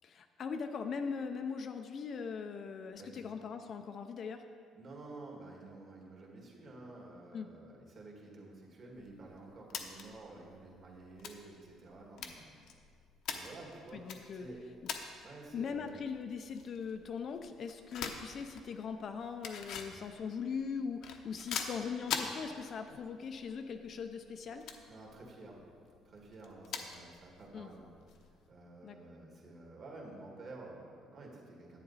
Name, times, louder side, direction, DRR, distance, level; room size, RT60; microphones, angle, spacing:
voice 1, 0.0-4.4 7.3-7.5 13.9-14.5 15.5-24.6 27.5-27.7 28.8-29.0, left 6 dB, 40° left, 6 dB, 0.5 m, -40 dB
voice 2, 4.7-12.5 13.3-14.0 14.3-14.6 15.2-16.0 24.9-25.6 26.1-31.8, right 2 dB, 40° right, -1 dB, 1.9 m, -51 dB
sound 1, 8.9-28.5, left 6 dB, 60° left, 0.8 m, -46 dB
10.5 x 9.0 x 4.1 m, 2.1 s
cardioid pair, 155°, 0 cm